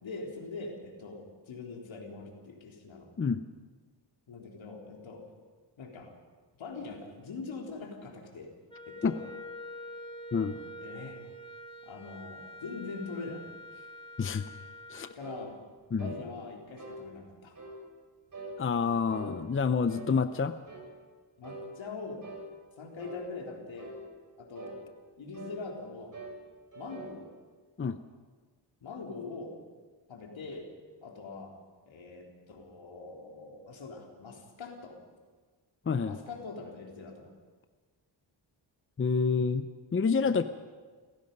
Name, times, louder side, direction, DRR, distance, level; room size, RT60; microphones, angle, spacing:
voice 1, 0.0-3.1 4.3-5.2 5.8-6.1 6.6-8.5 8.9-9.2 10.3-11.2 11.9-13.4 13.7-13.9 15.2-15.5 16.0-17.5 21.4-22.2 22.8-24.0 24.4-24.8 25.2-26.1 26.7-27.3 28.8-29.5 30.1-30.7 31.0-31.5 31.9-35.0 36.0-37.3, left 4 dB, 80° left, 1 dB, 3.8 m, -43 dB
Wind instrument woodwind instrument, 8.7-15.2, left 1 dB, 10° left, 2.0 m, -46 dB
sound 1, 15.2-15.5 16.0-16.2 16.8-17.0 17.5-17.8 18.3-18.6 19.1-19.3 19.9-20.1 20.7-20.9 21.4-21.7 22.2-22.5 23.0-23.2 23.8-24.0 24.5-24.8 25.3-25.6 26.1-26.4 26.7-27.1, right 3 dB, 40° right, 6.4 m, -43 dB
voice 2, 18.6-20.6 27.8-28.0 35.9-36.2 39.0-40.4, left 5 dB, 30° left, 11 dB, 0.6 m, -28 dB
29.0 x 16.5 x 5.4 m, 1.4 s
wide cardioid pair, 145°, 45 cm